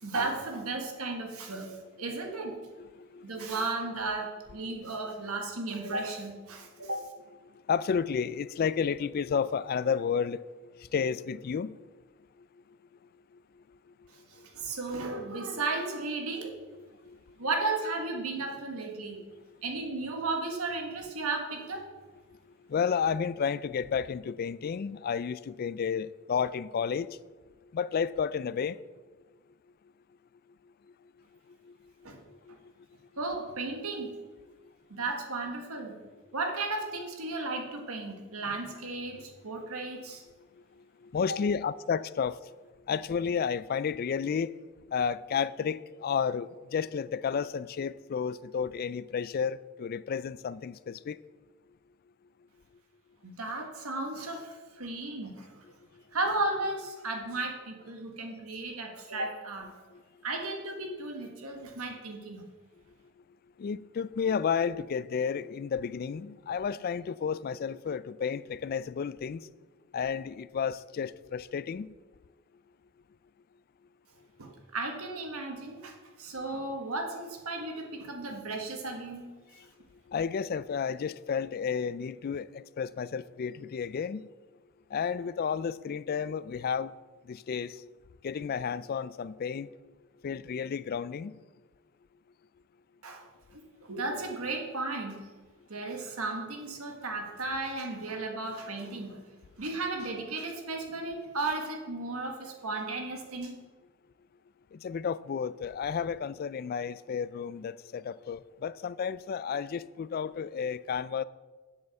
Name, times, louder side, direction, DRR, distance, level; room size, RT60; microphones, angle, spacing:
voice 1, 0.0-2.6 3.2-7.0 14.3-16.6 17.4-19.2 19.6-21.9 32.0-32.2 33.2-34.1 34.9-35.9 36.3-40.2 53.2-55.6 56.1-59.8 60.2-62.4 74.4-79.3 93.0-93.2 93.5-95.2 95.7-99.2 99.6-103.5, right 3 dB, 85° right, 1.6 m, -34 dB
voice 2, 2.8-3.5 4.7-4.8 7.7-10.4 10.9-11.8 16.8-17.2 19.2-19.3 22.7-27.1 27.7-28.8 31.7-31.8 32.5-32.6 41.0-42.4 42.9-44.5 44.9-51.2 63.6-69.5 69.9-71.9 76.4-76.5 80.1-84.3 84.9-86.9 87.3-87.8 88.2-89.7 90.2-91.3 104.7-111.2, left 6 dB, 45° left, 0.3 m, -32 dB
7.7 x 7.7 x 7.0 m
head